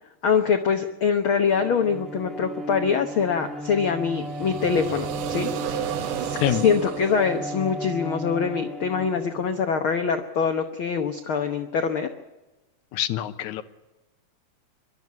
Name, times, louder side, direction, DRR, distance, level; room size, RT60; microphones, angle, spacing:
voice 1, 0.2-5.5 6.2-12.1, left 6 dB, 60° left, 7 dB, 1.4 m, -24 dB
Bowed string instrument, 1.4-9.9, right 1 dB, ahead, 0.6 m, -35 dB
sound 1, 4.1-8.1, right 10 dB, 85° right, 2.7 m, -33 dB
voice 2, 12.9-13.6, left 12 dB, 75° left, 9 dB, 2.4 m, -25 dB
23.5 x 12.5 x 9.6 m, 1.1 s
omnidirectional pair, 3.6 m